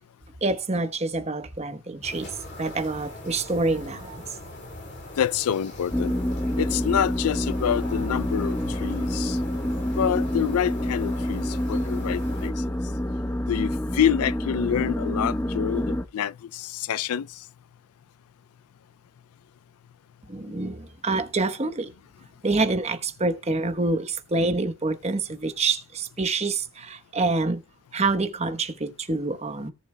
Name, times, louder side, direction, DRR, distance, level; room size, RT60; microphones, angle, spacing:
voice 1, 0.4-2.3 2.6-4.2 20.3-21.9 22.4-27.6 27.9-29.7, right 3 dB, 30° right, 1.0 m, -26 dB
sound 1, 2.0-12.5, left 1 dB, 50° left, 2.8 m, -41 dB
voice 2, 5.2-6.1 6.6-9.4 10.0-12.5 13.5-17.3, left 9 dB, 80° left, 0.4 m, -27 dB
sound 2, 5.9-16.0, left 1 dB, 10° left, 0.7 m, -27 dB
17.5 x 6.8 x 2.2 m
head